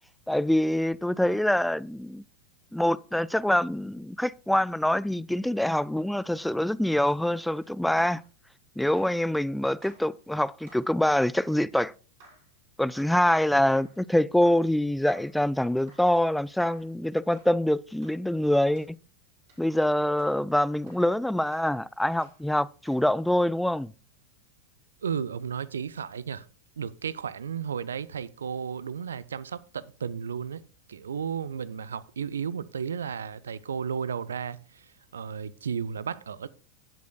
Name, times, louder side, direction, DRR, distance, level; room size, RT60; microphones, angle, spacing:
voice 1, 0.3-2.2 2.7-8.2 8.8-11.9 12.8-19.0 19.6-23.9, left 1 dB, ahead, 0.3 m, -25 dB
sound 1, 6.2-8.3 9.0-9.2 9.8-10.1 10.6-10.9 11.5-11.7 12.2-12.5 12.9-13.2 13.7-14.0 14.4-14.7 15.1-15.4 15.9-16.1 16.6-16.9 17.3-17.6 18.0-18.2 18.7-18.9 19.5-19.7 20.2-20.4 20.9-21.1 21.5-21.7 22.2-22.4 22.9-23.1, right 2 dB, 50° right, 6.2 m, -56 dB
voice 2, 25.0-26.5 26.8-30.6 30.9-36.5, right 7 dB, 70° right, 0.5 m, -34 dB
16.0 x 8.2 x 2.3 m
figure-of-eight pair, 90°, 0 cm